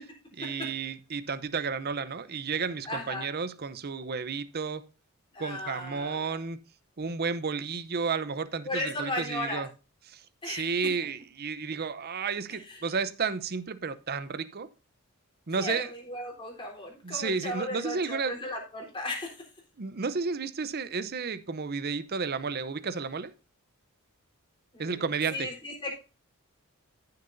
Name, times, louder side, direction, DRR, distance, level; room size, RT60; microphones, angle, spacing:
voice 1, 0.4-4.8 5.4-6.6 7.0-9.7 10.1-14.7 15.5-15.9 17.0-18.3 19.8-23.3 24.8-25.5, right 5 dB, 45° right, 0.7 m, -32 dB
voice 2, 2.9-3.2 5.3-6.4 8.6-9.6 10.4-10.7 12.7-12.8 15.6-19.5 24.7-26.0, left 1 dB, 20° left, 3.6 m, -36 dB
15.0 x 6.7 x 2.6 m
head